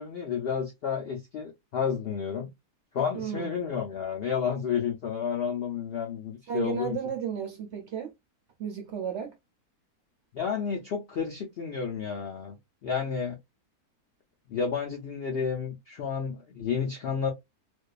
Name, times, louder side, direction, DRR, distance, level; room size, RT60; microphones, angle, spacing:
voice 1, 0.0-2.5 2.9-7.0 10.3-12.6 12.8-13.4 14.5-17.3, left 6 dB, 70° left, 0.5 m, -31 dB
voice 2, 3.1-3.6 6.5-8.1 8.6-9.4, right 8 dB, 65° right, 0.7 m, -33 dB
2.5 x 2.2 x 2.3 m
omnidirectional pair, 1.6 m